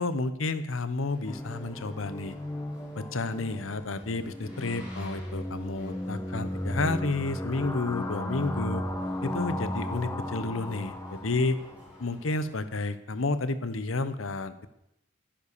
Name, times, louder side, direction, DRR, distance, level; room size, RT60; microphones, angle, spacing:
voice 1, 0.0-2.4 3.0-8.8 9.2-11.6 12.0-14.7, left 3 dB, 80° left, 12 dB, 1.0 m, -31 dB
Boat Water vehicle, 1.1-12.5, left 1 dB, 10° right, 4.9 m, -54 dB
sound 1, 1.2-12.1, left 1 dB, 15° left, 1.3 m, -35 dB
11.0 x 10.0 x 6.8 m, 0.81 s
head